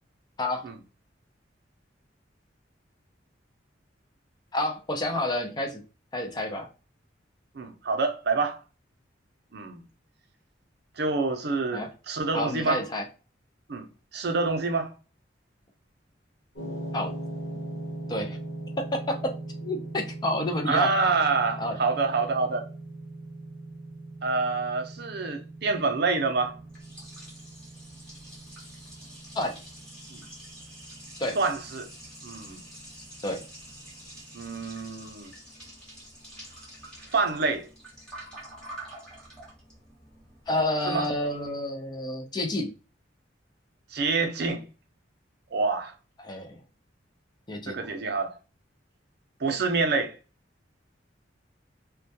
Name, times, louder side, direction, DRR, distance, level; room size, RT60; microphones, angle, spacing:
voice 1, 4.5-5.8 6.1-6.7 11.7-11.9 12.3-13.1 16.9-17.1 18.1-18.4 18.9-19.3 19.6-20.9 21.6-21.8 29.3-29.6 31.2-31.4 33.2-33.4 40.5-42.7 46.2-46.6 47.5-47.9, left 1 dB, 25° left, 0.4 m, -29 dB
voice 2, 7.5-8.6 9.5-9.8 11.0-12.8 13.7-13.9 14.1-14.9 20.7-22.7 24.2-26.5 30.1-30.2 31.4-31.9 32.2-32.6 34.3-35.3 37.1-37.7 40.9-41.1 43.9-44.6 45.5-45.9 47.7-48.3 49.4-50.1, right 4 dB, 60° right, 0.5 m, -27 dB
sound 1, 16.6-34.8, right 2 dB, 75° left, 1.2 m, -41 dB
Liquid, 26.3-41.5, right 1 dB, 5° left, 1.1 m, -47 dB
2.2 x 2.2 x 2.6 m
head